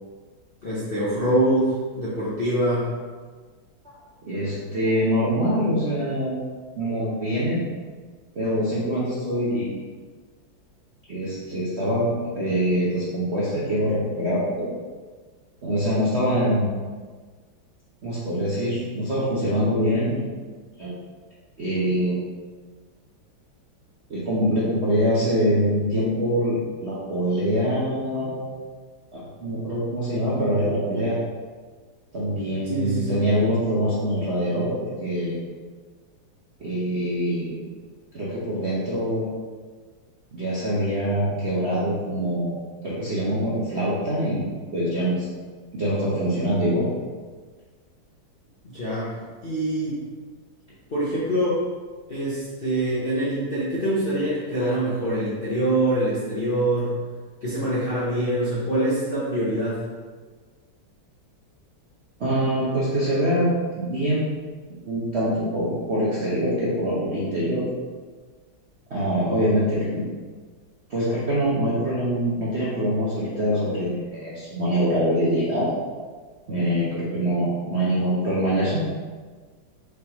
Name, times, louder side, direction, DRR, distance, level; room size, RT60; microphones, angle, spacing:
voice 1, 0.6-2.9 32.6-33.2 48.6-49.1 49.4-50.0 50.9-51.6 52.1-56.9 57.4-59.8, right 1 dB, 50° left, -10 dB, 0.6 m, -24 dB
voice 2, 4.2-6.4 6.8-7.6 8.3-9.8 11.1-14.7 15.6-16.8 18.0-20.3 20.8-20.9 21.6-22.2 24.1-28.5 29.1-31.2 32.1-34.7 35.0-35.4 36.6-37.5 38.1-39.3 40.3-42.5 42.8-44.5 44.7-45.3 45.7-46.9 62.2-64.3 64.9-67.6 68.9-70.1 70.9-75.7 76.5-78.8, equal, 60° right, -8 dB, 0.7 m, -24 dB
5.0 x 3.5 x 2.9 m, 1.5 s
omnidirectional pair, 2.2 m